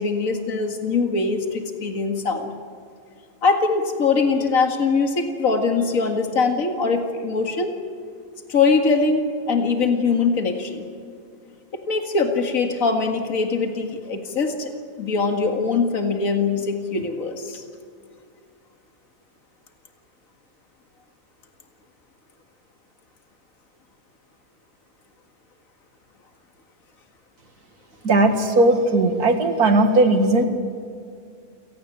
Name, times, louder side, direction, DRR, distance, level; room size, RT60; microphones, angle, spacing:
voice 1, 0.0-2.5 3.4-7.7 8.5-10.9 11.7-14.7 15.0-17.6, left 4 dB, 65° left, 5 dB, 2.3 m, -22 dB
voice 2, 28.0-30.4, right 2 dB, 85° right, 6 dB, 2.5 m, -17 dB
29.5 x 17.5 x 7.4 m, 2.3 s
omnidirectional pair, 1.6 m